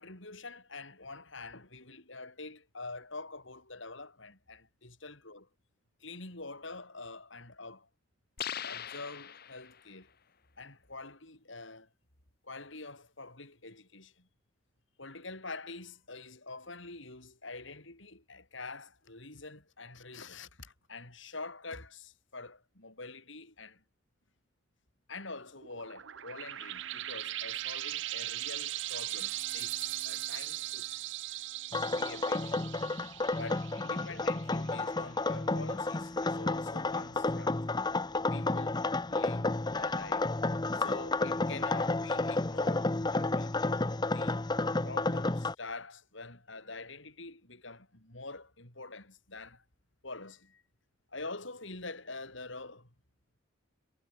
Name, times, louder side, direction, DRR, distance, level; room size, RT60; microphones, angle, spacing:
voice 1, 0.0-5.5 6.0-7.9 8.6-10.1 10.6-11.9 12.4-14.3 15.0-23.8 25.1-30.9 31.8-32.8 33.3-37.6 38.1-38.8 39.1-40.3 40.7-44.4 44.8-49.6 50.0-50.6 51.1-52.9, left 3 dB, 65° left, 6.4 m, -46 dB
sound 1, 8.4-9.9, left 9 dB, 50° left, 1.5 m, -40 dB
sound 2, 25.6-34.8, right 15 dB, 60° right, 0.6 m, -39 dB
sound 3, 31.7-45.5, left 2 dB, 20° left, 0.7 m, -31 dB
head